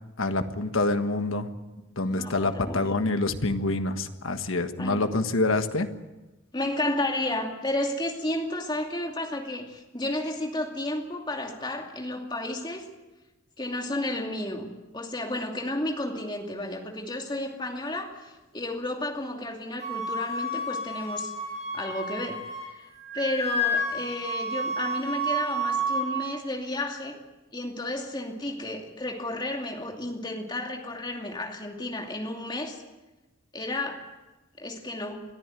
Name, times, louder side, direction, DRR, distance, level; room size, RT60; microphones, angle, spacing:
voice 1, 0.2-1.5 1.9-5.9, left 2 dB, 85° left, 8 dB, 1.5 m, -26 dB
voice 2, 2.0-3.0 4.8-5.1 6.5-12.9 13.6-21.3 21.7-22.9 23.1-27.2 27.5-32.8 33.5-34.0 34.6-35.2, left 1 dB, 20° left, 2 dB, 2.5 m, -32 dB
Wind instrument woodwind instrument, 19.8-22.7 23.0-26.1, equal, 35° right, 6.0 m, -30 dB
22.5 x 14.5 x 9.1 m, 1.1 s
head